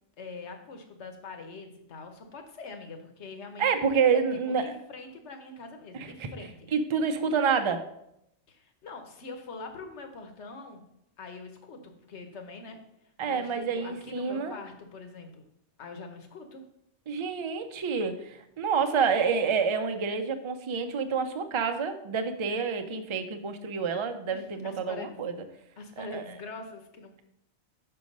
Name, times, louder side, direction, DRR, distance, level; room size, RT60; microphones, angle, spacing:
voice 1, 0.2-3.6 4.1-6.7 8.5-10.9 11.2-12.8 13.2-15.5 15.8-16.6 24.3-25.2 25.8-27.2, left 3 dB, 75° left, 6 dB, 1.3 m, -43 dB
voice 2, 3.6-4.6 6.0-6.3 6.7-7.9 13.2-14.6 17.1-25.3 26.0-26.2, right 6 dB, 35° right, 7 dB, 0.5 m, -28 dB
6.2 x 4.6 x 5.3 m, 0.77 s
omnidirectional pair, 1.2 m